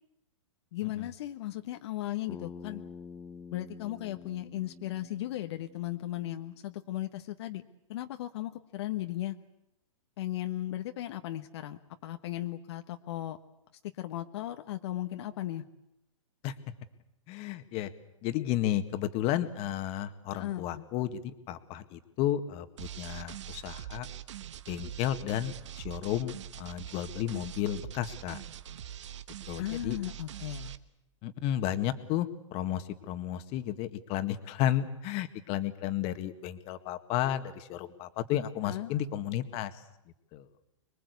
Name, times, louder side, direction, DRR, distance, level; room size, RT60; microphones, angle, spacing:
voice 1, 0.7-2.8 3.5-7.6 7.9-9.4 10.2-13.4 14.0-15.6 20.3-20.9 29.6-30.7 38.6-38.9, left 14 dB, 55° left, 7 dB, 1.3 m, -36 dB
Bass guitar, 2.3-6.6, left 5 dB, 10° left, 1.0 m, -48 dB
voice 2, 17.3-17.9 18.2-24.1 24.7-28.4 29.5-30.0 31.2-39.7 40.3-40.5, left 11 dB, 35° left, 10 dB, 1.9 m, -33 dB
sound 1, 22.8-30.8, right 11 dB, 65° right, 1.3 m, -43 dB
25.5 x 22.0 x 8.3 m, 0.85 s
hypercardioid pair, 125°, 17 cm